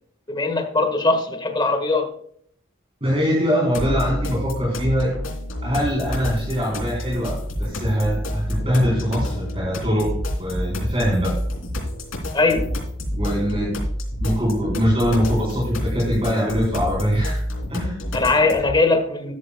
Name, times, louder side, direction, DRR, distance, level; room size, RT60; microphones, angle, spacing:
voice 1, 0.3-2.1 12.3-12.8 18.1-19.3, left 3 dB, 20° left, 4 dB, 1.7 m, -20 dB
voice 2, 3.0-5.1 5.6-11.3 13.1-13.7 14.2-17.4 17.7-18.0, equal, 30° right, -6 dB, 4.5 m, -22 dB
sound 1, 3.7-18.7, left 1 dB, 85° left, 3.3 m, -28 dB
13.5 x 11.5 x 2.4 m, 0.64 s
head